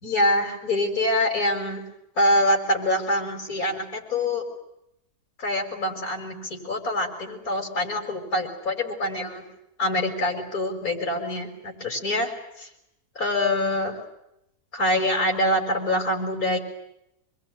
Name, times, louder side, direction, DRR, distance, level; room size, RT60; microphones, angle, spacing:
voice 1, 0.0-1.8 2.2-4.4 5.4-9.4 9.8-12.7 13.1-14.0 14.7-16.6, left 1 dB, 60° left, 4 dB, 6.6 m, -25 dB
26.5 x 22.5 x 9.6 m, 0.82 s
omnidirectional pair, 1.7 m